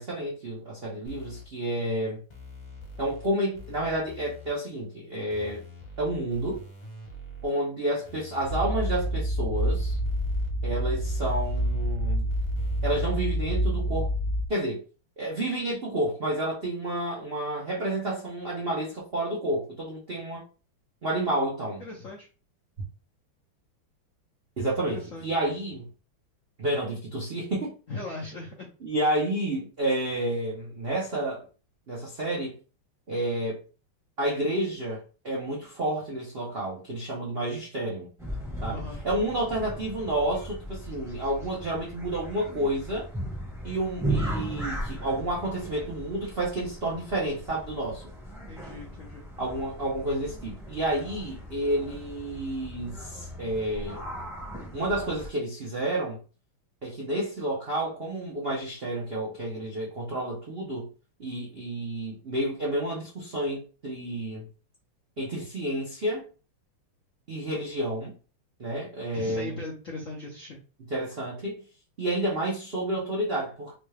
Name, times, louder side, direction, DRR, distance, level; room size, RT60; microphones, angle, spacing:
voice 1, 0.0-2.2 3.0-5.6 6.0-6.6 7.4-10.0 10.6-12.3 12.8-14.1 14.5-14.8 15.2-20.4 21.0-21.8 24.6-25.9 26.6-27.7 28.8-31.4 31.9-32.6 33.1-33.6 34.2-38.1 38.6-43.1 43.6-48.0 49.4-54.0 54.7-56.2 56.8-60.9 61.2-64.5 65.2-66.2 67.3-68.1 68.6-69.6 70.9-71.6 72.0-73.8, right 1 dB, 80° right, 0.5 m, -30 dB
sound 1, 1.1-1.4 2.3-3.3 3.5-4.5 5.3-7.5 8.0-9.1 9.5-10.5 11.0-13.1, equal, 30° left, 0.8 m, -43 dB
sound 2, 8.4-14.5, equal, 60° right, 1.3 m, -27 dB
voice 2, 21.8-22.3 24.9-25.3 27.9-28.7 38.7-39.0 48.5-49.3 69.1-70.6, left 2 dB, 75° left, 0.7 m, -39 dB
sound 3, 38.2-55.3, right 1 dB, 5° right, 0.6 m, -37 dB
4.0 x 2.3 x 3.2 m
omnidirectional pair, 2.4 m